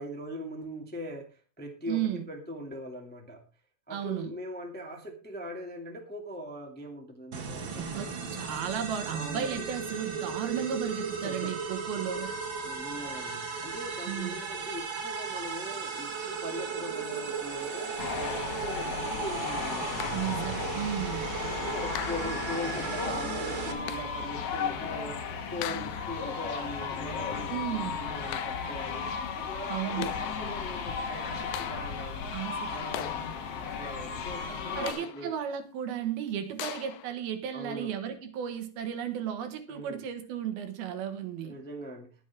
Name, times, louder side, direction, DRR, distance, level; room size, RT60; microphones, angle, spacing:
voice 1, 0.0-3.4 3.9-8.4 9.0-9.7 11.2-11.7 12.2-12.3 12.6-17.9 18.2-20.7 21.6-25.2 25.5-27.5 27.8-29.0 29.3-32.2 32.7-35.3 37.5-37.9 39.7-40.0 41.4-42.2, equal, 5° left, 1.1 m, -41 dB
voice 2, 1.8-2.3 3.9-4.3 7.8-12.4 14.1-14.4 20.1-21.3 27.5-28.0 29.7-30.1 32.3-32.7 34.8-41.6, right 9 dB, 75° right, 3.2 m, -34 dB
sound 1, 7.3-23.7, right 5 dB, 45° right, 1.6 m, -36 dB
sound 2, 18.0-34.9, left 6 dB, 55° left, 1.8 m, -35 dB
sound 3, 20.0-20.6 21.9-22.7 23.9-24.3 25.6-26.3 28.3-28.9 29.8-30.4 31.5-32.1 32.9-33.7 34.9-35.4 36.6-37.2, left 13 dB, 75° left, 2.4 m, -40 dB
21.0 x 7.4 x 3.5 m
omnidirectional pair, 4.4 m